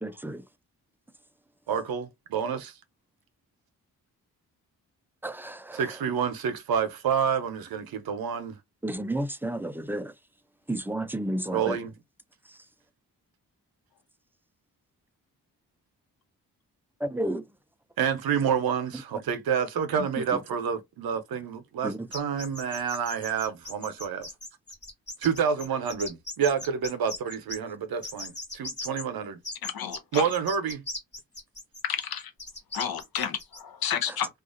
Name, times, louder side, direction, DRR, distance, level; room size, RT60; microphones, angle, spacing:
voice 1, 0.0-0.4 5.2-5.8 8.8-10.1 10.7-11.8 17.0-17.4 21.8-22.0, right 1 dB, 5° right, 0.3 m, -31 dB
voice 2, 1.7-2.7 5.7-8.6 11.5-11.9 18.0-24.3 25.2-29.4 30.1-30.8, right 7 dB, 70° right, 0.7 m, -28 dB
sound 1, 22.1-27.6 28.0-29.0 29.4-33.6, left 2 dB, 30° left, 1.3 m, -39 dB
voice 3, 29.6-30.2 31.8-32.3 32.7-34.3, left 8 dB, 70° left, 0.7 m, -31 dB
2.3 x 2.3 x 2.4 m
supercardioid pair, 50°, 38 cm